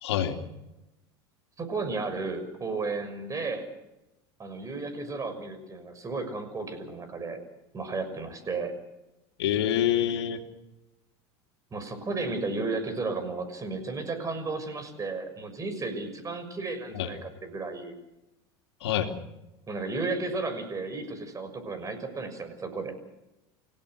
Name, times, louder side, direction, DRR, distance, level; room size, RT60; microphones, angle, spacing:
voice 1, 0.0-0.4 9.4-10.4 17.0-17.1 18.8-19.1, left 10 dB, 85° left, 5 dB, 2.7 m, -26 dB
voice 2, 1.6-3.7 4.4-7.4 7.7-8.7 11.7-18.0 19.7-23.0, right 3 dB, 25° right, 9 dB, 6.3 m, -33 dB
29.5 x 16.5 x 6.5 m, 0.95 s
supercardioid pair, 105°, 14 cm